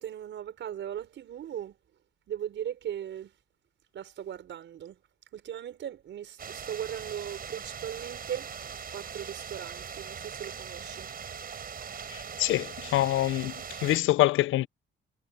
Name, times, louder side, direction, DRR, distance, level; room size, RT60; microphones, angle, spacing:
voice 1, 0.0-1.8 2.3-3.3 3.9-5.0 5.3-8.6 8.9-11.1, right 10 dB, 70° right, 5.3 m, -38 dB
sound 1, 6.4-14.0, right 7 dB, 50° right, 5.3 m, -41 dB
voice 2, 12.1-13.5 13.8-14.7, left 16 dB, 80° left, 0.6 m, -25 dB
cardioid pair, 90°, 20 cm